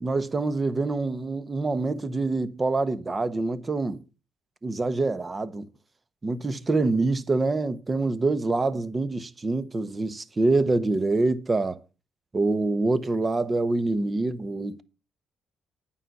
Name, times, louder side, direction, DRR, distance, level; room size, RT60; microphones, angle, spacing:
voice 1, 0.0-4.0 4.6-5.7 6.2-11.8 12.3-14.8, right 3 dB, 25° right, 1.1 m, -25 dB
9.1 x 5.7 x 7.9 m
cardioid pair, 90°, 0 cm